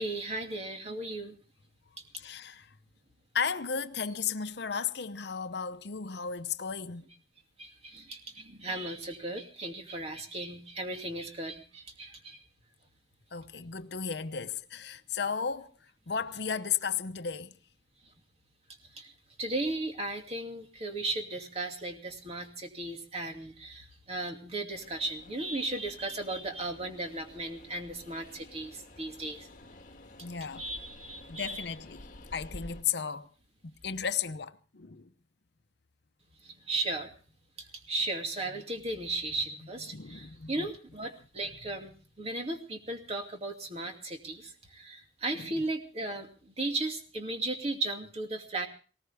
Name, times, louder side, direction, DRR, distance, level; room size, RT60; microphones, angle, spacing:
voice 1, 0.0-1.3 2.1-2.2 7.6-12.4 18.9-19.1 19.4-29.5 30.6-31.6 36.4-37.1 37.6-48.7, right 2 dB, 35° right, 2.5 m, -36 dB
voice 2, 2.2-2.7 3.3-7.1 13.3-17.6 30.2-30.6 31.3-32.0 32.3-33.3 33.6-35.1 39.9-40.7 45.3-45.6, left 6 dB, 60° left, 0.8 m, -34 dB
Train, 24.7-32.8, left 1 dB, 45° left, 1.6 m, -51 dB
19.5 x 18.5 x 3.5 m
head